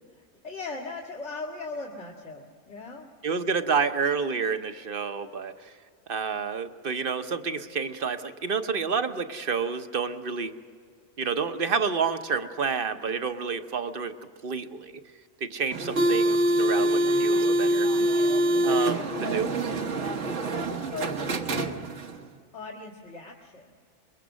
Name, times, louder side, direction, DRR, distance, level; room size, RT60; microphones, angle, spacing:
voice 1, 0.4-3.1 18.8-21.7 22.5-23.7, left 3 dB, 70° left, -2 dB, 2.3 m, -39 dB
voice 2, 3.2-5.7 6.1-10.5 11.2-14.1 14.4-14.9 15.4-17.9 18.6-19.5, right 5 dB, 50° right, 9 dB, 1.1 m, -29 dB
sound 1, 15.7-22.2, right 1 dB, 70° right, 1.5 m, -25 dB
25.0 x 22.5 x 6.3 m, 2.1 s
omnidirectional pair, 1.3 m